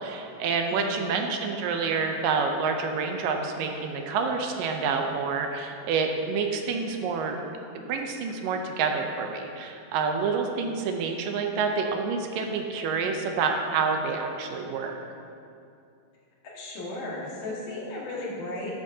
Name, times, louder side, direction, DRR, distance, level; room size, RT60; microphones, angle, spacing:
voice 1, 0.0-7.4 7.9-14.9, right 5 dB, 80° right, 3 dB, 2.3 m, -28 dB
voice 2, 0.7-1.1 16.4-18.8, left 2 dB, 65° left, -6 dB, 3.4 m, -35 dB
13.0 x 10.5 x 2.8 m, 2.5 s
omnidirectional pair, 4.1 m